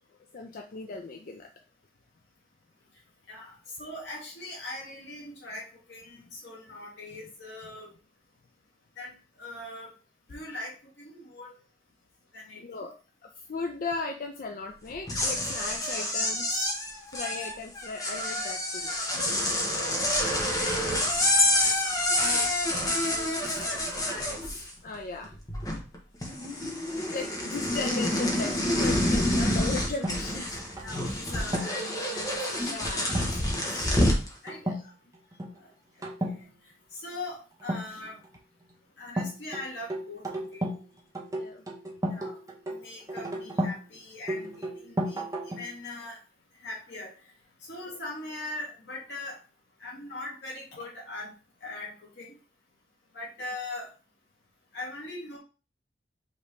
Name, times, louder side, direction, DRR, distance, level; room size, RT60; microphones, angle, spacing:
voice 1, 0.3-1.5 6.2-6.3 12.6-12.9 13.2-16.6 17.1-19.0 24.8-25.3 26.9-30.6 32.7-33.0 34.6-34.9 41.3-41.7, left 3 dB, 50° left, 3 dB, 0.5 m, -37 dB
voice 2, 3.3-7.9 9.0-9.1 9.4-9.9 10.3-11.6 12.3-12.6 19.1-19.3 20.0-20.5 21.5-22.5 23.1-24.4 30.8-33.3 33.6-34.1 34.4-34.6 35.6-35.7 36.3-36.4 36.9-38.2 39.0-40.6 42.1-42.4 42.7-46.2 46.6-47.1 47.6-49.4 49.8-51.3 51.6-52.3 53.1-53.9 54.7-55.4, left 2 dB, 85° left, -3 dB, 2.0 m, -41 dB
sound 1, 14.9-24.9 25.2-26.0 26.2-34.3, left 1 dB, 20° left, 1.0 m, -28 dB
sound 2, 30.0-31.9 33.1-33.4 33.7-34.0 34.5-34.8 35.1-35.5 36.0-36.4 37.6-38.4 39.2-40.8 41.1-43.8 44.3-45.7, right 1 dB, 20° right, 0.8 m, -33 dB
5.1 x 3.0 x 3.2 m, 0.34 s
head